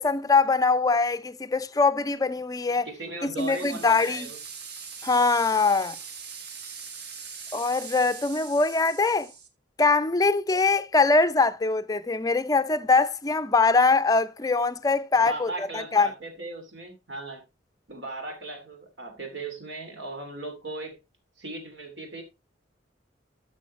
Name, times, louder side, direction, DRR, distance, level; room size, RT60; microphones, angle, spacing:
voice 1, 0.0-2.9 3.2-4.3 5.0-6.0 7.5-9.3 9.8-16.1, left 4 dB, 20° left, 0.4 m, -23 dB
voice 2, 2.8-4.4 15.1-17.4 17.9-21.0 21.4-22.2, right 2 dB, 75° right, 2.7 m, -37 dB
sound 1, 3.4-9.5, right 6 dB, 55° right, 1.3 m, -41 dB
12.0 x 6.4 x 3.1 m
head